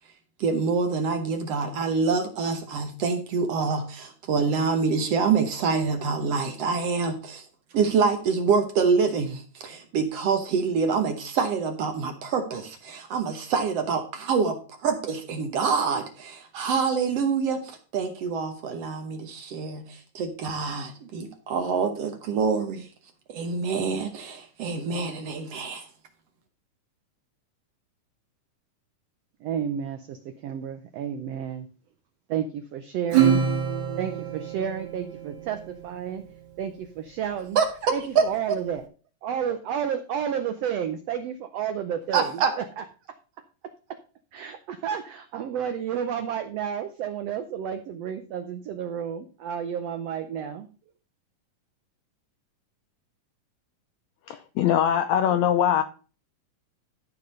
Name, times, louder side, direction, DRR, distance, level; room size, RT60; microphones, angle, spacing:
voice 1, 0.4-7.4 7.7-22.9 23.3-25.8 37.5-38.3 42.1-42.5, right 5 dB, 65° right, 6 dB, 1.7 m, -26 dB
voice 2, 29.4-31.7 32.3-33.4 34.0-36.2 36.6-37.6 37.9-38.9 39.2-43.1 43.9-44.0 44.3-50.7, right 8 dB, 85° right, 8 dB, 1.4 m, -31 dB
Acoustic guitar / Strum, 33.1-36.0, right 8 dB, 40° right, 2.6 m, -25 dB
voice 3, 54.3-55.8, left 10 dB, 85° left, 8 dB, 1.6 m, -22 dB
12.5 x 4.8 x 5.4 m, 0.37 s
omnidirectional pair, 3.8 m